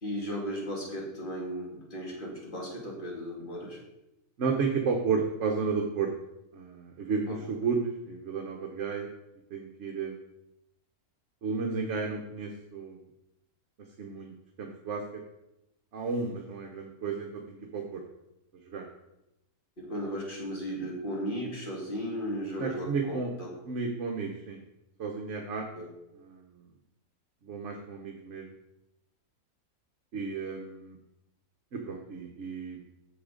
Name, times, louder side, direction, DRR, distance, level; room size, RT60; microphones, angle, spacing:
voice 1, 0.0-3.8 7.3-7.4 19.8-23.5 25.8-25.9, equal, 35° left, -3 dB, 2.4 m, -36 dB
voice 2, 4.4-6.1 6.5-9.1 9.5-10.2 11.4-13.0 14.0-15.2 15.9-18.0 18.7-18.9 22.6-23.3 23.7-24.6 25.0-25.7 26.2-26.5 27.4-28.5 30.1-31.0 31.7-32.8, right 5 dB, 55° right, 1 dB, 1.1 m, -32 dB
8.4 x 7.1 x 3.8 m, 0.88 s
omnidirectional pair, 1.6 m